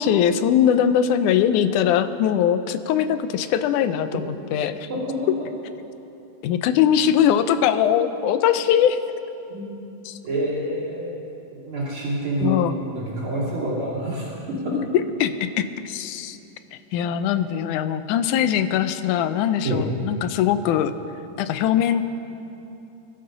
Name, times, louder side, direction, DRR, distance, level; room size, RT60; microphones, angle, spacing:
voice 1, 0.0-4.9 6.4-9.0 10.1-10.2 12.4-12.8 14.7-16.4 16.7-20.9 21.4-22.0, left 9 dB, 90° left, 11 dB, 2.1 m, -21 dB
voice 2, 4.9-5.3 9.5-9.7 10.2-11.1 11.5-12.6 12.8-14.8 19.6-19.9, right 1 dB, 45° right, -7 dB, 3.5 m, -27 dB
22.0 x 12.0 x 3.9 m, 2.8 s
omnidirectional pair, 3.4 m